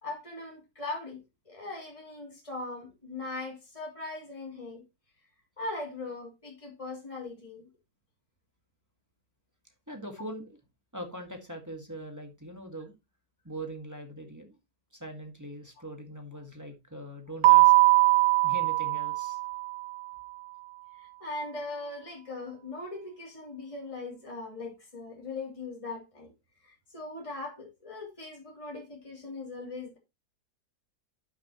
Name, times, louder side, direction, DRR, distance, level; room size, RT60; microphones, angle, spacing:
voice 1, 0.0-4.8 5.6-7.7 15.8-15.9 21.0-26.3 26.6-30.0, left 2 dB, 20° left, 3.1 m, -40 dB
voice 2, 9.9-10.6 10.9-12.9 13.4-14.6 14.9-17.7 18.4-19.4, right 1 dB, 10° right, 1.7 m, -41 dB
Keyboard (musical), 17.4-20.0, right 22 dB, 75° right, 1.2 m, -21 dB
11.0 x 6.2 x 3.0 m
omnidirectional pair, 1.6 m